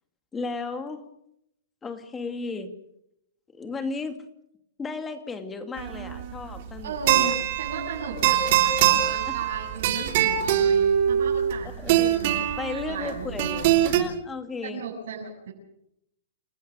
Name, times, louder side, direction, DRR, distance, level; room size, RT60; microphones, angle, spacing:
voice 1, 0.3-1.1 1.8-2.7 3.5-4.2 4.8-7.4 8.2-8.7 9.3-9.4 11.8-12.2 12.6-14.8, left 4 dB, 10° left, 8 dB, 2.3 m, -35 dB
sound 1, 5.8-14.0, right 10 dB, 45° right, 3.3 m, -23 dB
voice 2, 6.8-13.5 14.6-15.5, right 5 dB, 65° right, -3 dB, 8.0 m, -36 dB
29.0 x 15.0 x 7.6 m, 0.77 s
hypercardioid pair, 160°, 0 cm